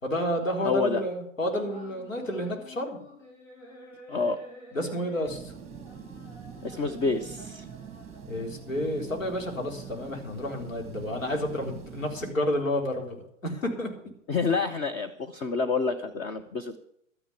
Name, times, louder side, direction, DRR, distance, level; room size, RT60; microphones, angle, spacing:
voice 1, 0.0-3.0 4.7-5.5 8.3-14.1, left 1 dB, 75° left, 1 dB, 4.1 m, -30 dB
voice 2, 0.6-1.0 4.1-4.4 6.6-7.6 14.3-16.8, left 4 dB, 10° left, 5 dB, 0.4 m, -28 dB
sound 1, 1.5-10.4, left 1 dB, 55° left, 6.7 m, -50 dB
sound 2, 5.2-12.3, right 8 dB, 15° right, 1.5 m, -44 dB
13.0 x 10.0 x 7.0 m, 0.71 s
figure-of-eight pair, 110°, 39 cm